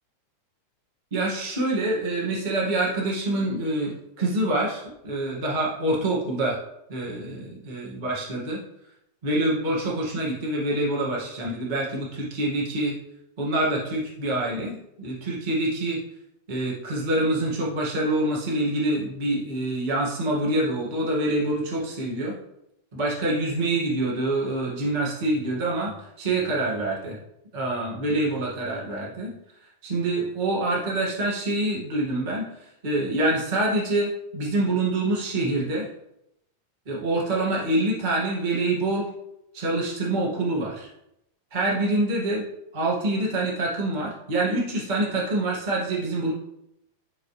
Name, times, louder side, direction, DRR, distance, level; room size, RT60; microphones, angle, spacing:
voice 1, 1.1-6.6 6.9-8.6 9.2-12.9 13.4-16.0 16.5-22.3 22.9-27.2 27.5-29.3 29.8-32.5 32.8-35.9 36.8-39.1 39.5-40.9 41.5-42.5 42.7-46.3, right 2 dB, 55° right, -4 dB, 0.5 m, -26 dB
13.5 x 5.4 x 3.3 m, 0.82 s
omnidirectional pair, 4.8 m